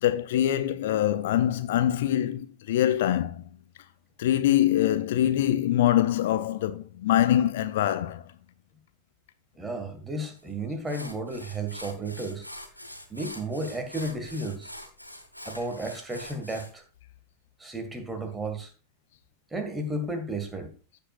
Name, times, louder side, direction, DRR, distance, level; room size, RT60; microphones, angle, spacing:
voice 1, 0.0-3.4 4.2-8.2, left 12 dB, 55° left, 0.4 m, -24 dB
voice 2, 9.6-12.5 13.1-14.7 15.5-16.8 17.6-18.7 19.5-20.7, right 2 dB, 10° right, 1.8 m, -33 dB
sound 1, 10.4-10.5 10.9-16.7, left 1 dB, 90° left, 1.1 m, -44 dB
15.0 x 5.4 x 2.5 m
figure-of-eight pair, 90°, 0 cm